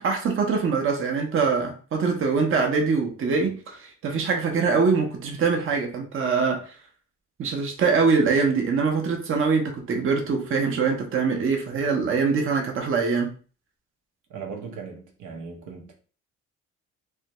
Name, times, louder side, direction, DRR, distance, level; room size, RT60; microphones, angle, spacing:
voice 1, 0.0-6.7 7.4-13.3, right 5 dB, 45° right, 0.6 m, -23 dB
voice 2, 14.3-15.9, right 5 dB, 75° right, 0.7 m, -38 dB
2.5 x 2.2 x 2.9 m
cardioid pair, 90°, 30 cm